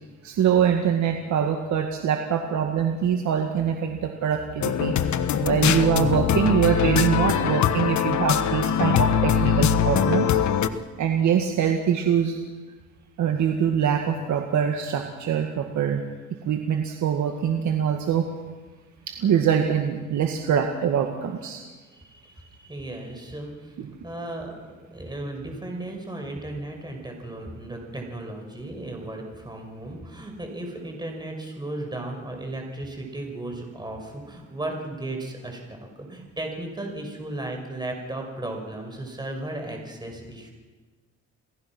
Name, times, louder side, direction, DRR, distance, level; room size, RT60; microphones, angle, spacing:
voice 1, 0.2-4.9 5.4-10.4 11.0-12.4 13.2-16.0 16.5-18.3 19.1-21.6 23.8-23.9, right 8 dB, 70° right, 4 dB, 2.0 m, -24 dB
sound 1, 4.6-10.7, left 8 dB, 70° left, 1.4 m, -22 dB
voice 2, 21.9-40.5, right 1 dB, 15° right, 2 dB, 5.8 m, -35 dB
28.0 x 18.5 x 6.2 m, 1.4 s
cardioid pair, 90°, 30 cm